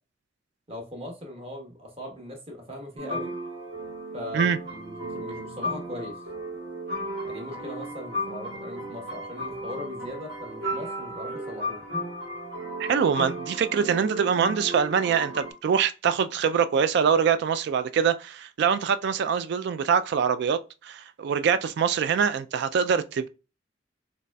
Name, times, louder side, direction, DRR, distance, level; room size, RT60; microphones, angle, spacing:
voice 1, 0.7-3.4 4.1-6.2 7.2-11.8, left 1 dB, 35° right, 1.1 m, -39 dB
sound 1, 3.0-15.5, equal, 80° right, 1.7 m, -34 dB
voice 2, 12.8-23.3, right 7 dB, 65° right, 0.3 m, -24 dB
4.0 x 3.1 x 2.2 m
head